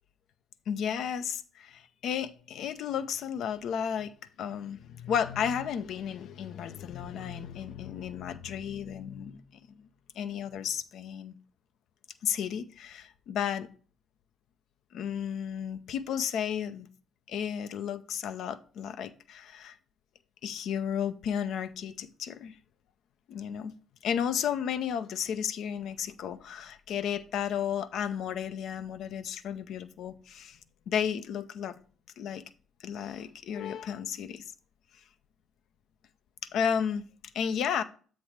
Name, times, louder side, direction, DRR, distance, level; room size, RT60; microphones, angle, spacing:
voice 1, 0.7-9.4 9.7-9.8 10.2-11.3 12.2-13.7 14.9-16.9 17.3-19.8 20.4-22.5 23.3-23.7 24.0-30.6 30.9-31.8 32.2-32.4 32.8-34.4 36.5-37.0 37.3-37.8, left 8 dB, 60° left, 0.5 m, -33 dB
7.8 x 3.3 x 5.8 m
hypercardioid pair, 50°, 0 cm